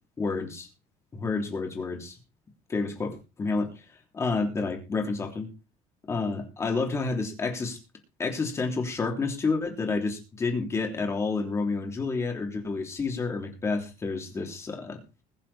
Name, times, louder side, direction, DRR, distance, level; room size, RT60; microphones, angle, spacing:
voice 1, 0.2-0.7 1.1-2.2 2.7-3.7 4.1-5.5 6.1-7.8 8.2-15.0, left 4 dB, 20° left, 3 dB, 3.2 m, -29 dB
21.5 x 7.4 x 4.3 m, 0.30 s
cardioid pair, 180°, 14 cm